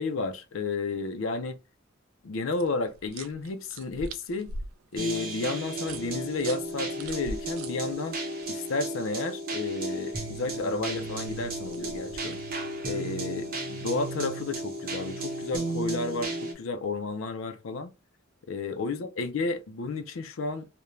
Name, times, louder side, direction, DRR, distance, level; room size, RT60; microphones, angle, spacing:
voice 1, 0.0-1.6 2.2-4.5 4.9-8.2 8.5-12.4 12.9-16.3 16.6-17.9 18.5-20.7, left 3 dB, 70° left, 0.4 m, -32 dB
sound 1, 2.5-8.5 11.0-12.5, right 2 dB, 75° right, 0.3 m, -43 dB
sound 2, 5.0-16.5, right 2 dB, 45° right, 0.7 m, -34 dB
2.5 x 2.1 x 3.0 m
head